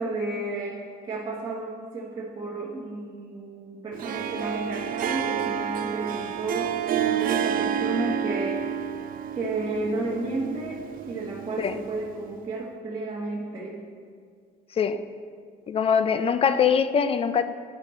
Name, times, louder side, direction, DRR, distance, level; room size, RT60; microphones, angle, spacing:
voice 1, 0.0-8.8 9.3-13.8, right 2 dB, 25° right, -4 dB, 1.1 m, -32 dB
Harp, 3.9-12.2, right 8 dB, 55° right, 0.5 m, -30 dB
voice 2, 15.7-17.4, left 7 dB, 35° left, 11 dB, 0.4 m, -22 dB
9.9 x 5.1 x 4.2 m, 2.1 s
cardioid pair, 110°, 17 cm